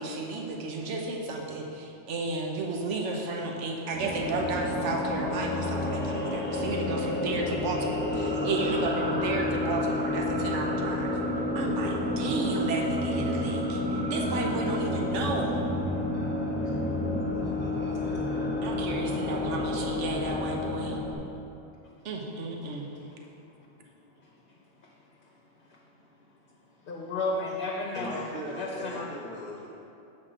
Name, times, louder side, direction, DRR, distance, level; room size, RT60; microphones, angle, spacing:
voice 1, 0.0-8.0 8.4-11.2 11.5-15.6 18.6-21.0 22.0-22.9, right 3 dB, 80° right, 0 dB, 1.2 m, -33 dB
sound 1, 3.9-21.1, left 1 dB, 10° left, 0.7 m, -30 dB
voice 2, 8.1-8.9 26.8-26.9 27.9-29.7, equal, 25° left, -7 dB, 1.1 m, -39 dB
voice 3, 26.9-29.0, left 2 dB, 50° left, -2 dB, 0.8 m, -32 dB
7.4 x 4.1 x 6.5 m, 2.7 s
omnidirectional pair, 1.2 m